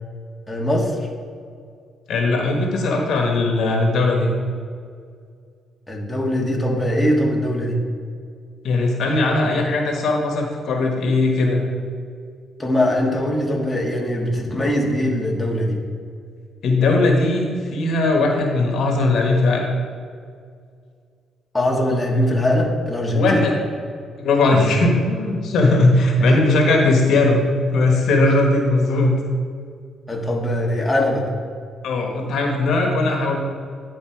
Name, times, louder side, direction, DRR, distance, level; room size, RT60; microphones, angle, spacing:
voice 1, 0.5-1.0 5.9-7.8 12.6-15.8 21.5-23.4 30.1-31.2, left 1 dB, 15° left, -2 dB, 1.6 m, -21 dB
voice 2, 2.1-4.3 8.6-11.6 16.6-19.7 23.1-23.5 24.2-27.4 27.7-29.1 31.8-33.4, left 2 dB, 70° left, 1 dB, 1.3 m, -18 dB
10.5 x 4.2 x 4.6 m, 2.2 s
cardioid pair, 90°, 0 cm